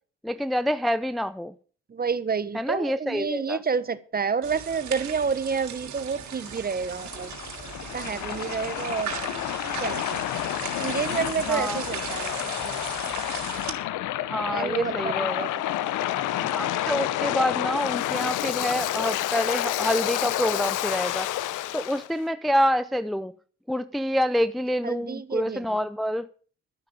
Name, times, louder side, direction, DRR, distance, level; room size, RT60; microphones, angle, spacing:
voice 1, 0.2-1.5 2.5-3.6 11.5-11.8 14.2-15.5 16.5-21.3 21.7-23.3 23.7-26.3, equal, ahead, 0.5 m, -27 dB
voice 2, 1.9-7.3 7.9-9.2 9.6-10.2 10.8-12.4 12.6-12.8 14.5-15.5 24.8-25.8, right 5 dB, 30° right, 1.2 m, -29 dB
sound 1, 4.4-13.7, right 8 dB, 70° right, 3.1 m, -37 dB
Waves surf, 6.3-22.1, left 13 dB, 85° left, 0.9 m, -29 dB
13.0 x 6.6 x 8.5 m
cardioid pair, 90°, 30 cm